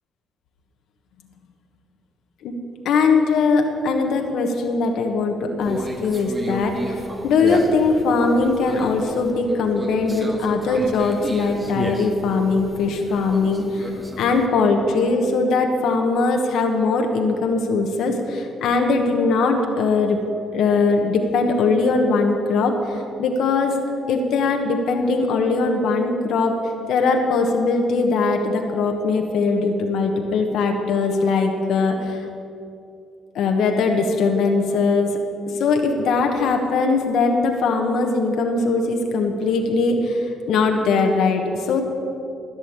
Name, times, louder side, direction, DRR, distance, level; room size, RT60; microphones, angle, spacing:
voice 1, 2.8-13.9 14.2-20.2 20.5-23.7 24.1-26.6 26.9-32.2 33.3-35.2 35.6-41.8, left 4 dB, 80° left, 3 dB, 1.3 m, -20 dB
Conversation, 5.6-14.5, right 1 dB, 20° right, 1.6 m, -32 dB
14.5 x 6.3 x 8.7 m, 2.6 s
cardioid pair, 90°, 0 cm